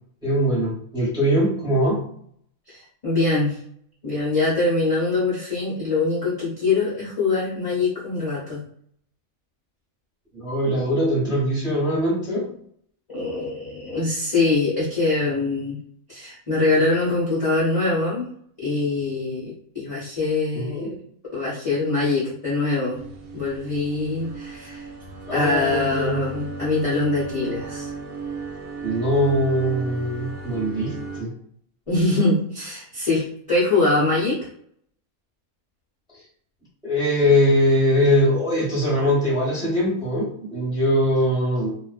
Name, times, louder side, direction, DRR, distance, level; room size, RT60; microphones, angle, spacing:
voice 1, 0.2-2.1 10.3-12.5 20.5-21.0 25.3-26.2 28.8-31.3 36.8-41.8, equal, 5° right, -6 dB, 0.8 m, -22 dB
voice 2, 2.7-3.6 4.0-8.6 13.1-15.8 16.1-18.3 18.6-20.9 21.3-23.0 23.3-24.9 25.3-27.9 31.9-34.4, left 3 dB, 35° left, -8 dB, 0.6 m, -23 dB
sound 1, 22.9-31.2, right 3 dB, 85° right, 1.1 m, -35 dB
2.5 x 2.2 x 2.3 m, 0.64 s
omnidirectional pair, 1.5 m